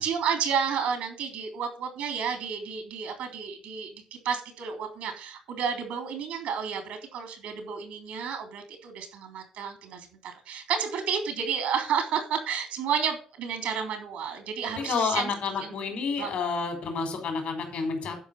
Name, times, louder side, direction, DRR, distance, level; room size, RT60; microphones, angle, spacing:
voice 1, 0.0-15.3 15.6-15.8 16.2-16.5, right 7 dB, 80° right, 6 dB, 3.3 m, -31 dB
voice 2, 14.7-18.2, left 5 dB, 70° left, 5 dB, 4.7 m, -29 dB
12.0 x 5.1 x 7.0 m, 0.39 s
supercardioid pair, 60°, 2 cm